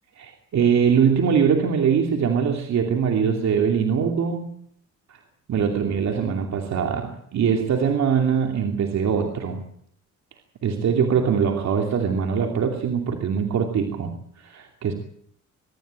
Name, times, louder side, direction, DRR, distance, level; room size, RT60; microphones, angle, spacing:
voice 1, 0.2-4.4 5.1-5.2 5.5-9.6 10.6-14.9, right 7 dB, 65° right, 3 dB, 2.8 m, -22 dB
24.0 x 13.0 x 8.9 m, 0.67 s
cardioid pair, 90°, 30 cm